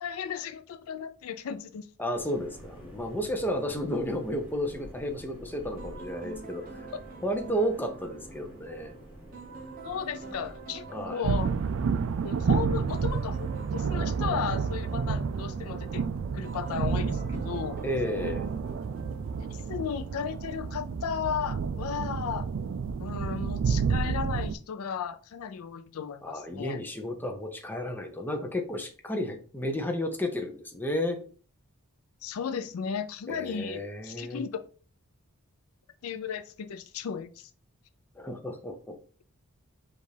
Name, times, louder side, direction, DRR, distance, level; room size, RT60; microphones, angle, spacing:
voice 1, 0.0-1.9 9.8-11.5 12.2-16.0 16.3-17.8 19.5-22.5 23.0-26.8 32.2-34.6 36.0-37.5, left 7 dB, 75° left, 10 dB, 0.4 m, -35 dB
voice 2, 2.0-6.9 7.2-8.9 10.9-11.2 17.8-18.5 26.2-31.2 33.3-34.4 38.2-39.0, equal, 10° left, 4 dB, 0.5 m, -32 dB
sound 1, 2.1-11.1, equal, 10° right, 2.0 m, -49 dB
sound 2, 5.8-20.0, right 4 dB, 40° right, 0.9 m, -46 dB
sound 3, 11.2-24.5, right 5 dB, 60° right, 0.3 m, -30 dB
5.3 x 2.5 x 3.3 m, 0.40 s
head